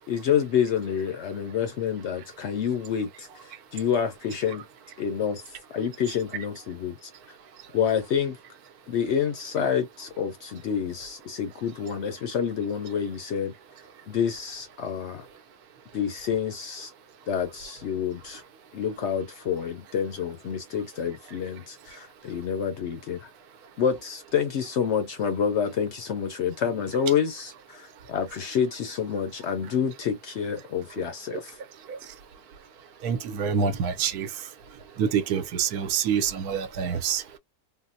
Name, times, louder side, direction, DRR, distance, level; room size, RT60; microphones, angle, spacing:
voice 1, 0.1-3.3 3.7-4.6 5.0-5.4 5.7-7.1 7.7-8.4 8.9-13.5 14.1-15.2 15.9-16.9 17.3-18.4 18.7-23.2 23.8-31.6, left 7 dB, 65° left, 0.7 m, -28 dB
voice 2, 33.0-34.3 35.0-37.4, right 7 dB, 80° right, 1.2 m, -26 dB
3.7 x 2.1 x 2.6 m
omnidirectional pair, 1.6 m